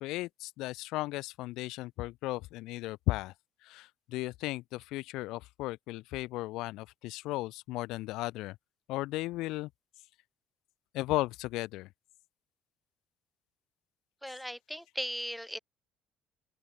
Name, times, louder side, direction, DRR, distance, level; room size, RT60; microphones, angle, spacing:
voice 1, 0.0-3.3 3.6-8.6 8.9-9.7 10.9-11.9, left 19 dB, 75° left, 0.4 m, -35 dB
voice 2, 14.2-15.6, equal, ahead, 0.4 m, -38 dB
open air
cardioid pair, 130°, 0 cm